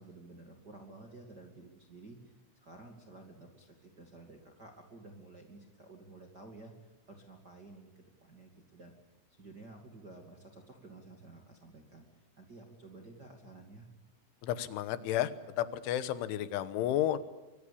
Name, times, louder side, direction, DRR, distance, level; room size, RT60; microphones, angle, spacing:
voice 1, 0.0-2.2 2.6-8.9 9.3-12.1 12.4-13.9, right 2 dB, 35° right, 2 dB, 1.7 m, -52 dB
voice 2, 14.4-15.3 15.6-17.2, left 12 dB, 80° left, 13 dB, 3.5 m, -32 dB
24.5 x 22.5 x 8.6 m, 1.0 s
omnidirectional pair, 5.7 m